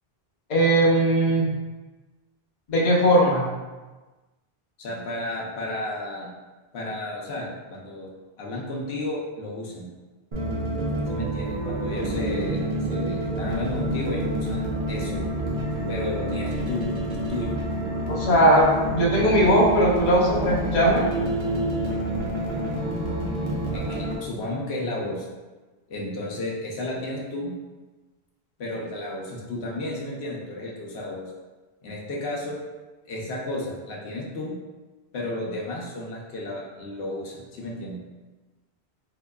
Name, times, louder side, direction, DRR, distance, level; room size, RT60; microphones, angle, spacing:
voice 1, 0.5-1.5 2.7-3.5 18.1-21.0, equal, 50° left, -4 dB, 0.8 m, -19 dB
voice 2, 4.8-6.3 6.7-8.1 8.4-9.9 11.1-12.6 12.9-15.2 15.9-16.8 17.1-17.5 22.9-25.3 25.9-27.5 28.6-31.3 31.8-32.6 33.1-34.6 35.1-38.0, left 1 dB, 90° left, -3 dB, 0.9 m, -33 dB
sound 1, 10.3-24.2, right 1 dB, 35° right, 0.6 m, -28 dB
3.5 x 2.9 x 2.2 m, 1.2 s
omnidirectional pair, 1.0 m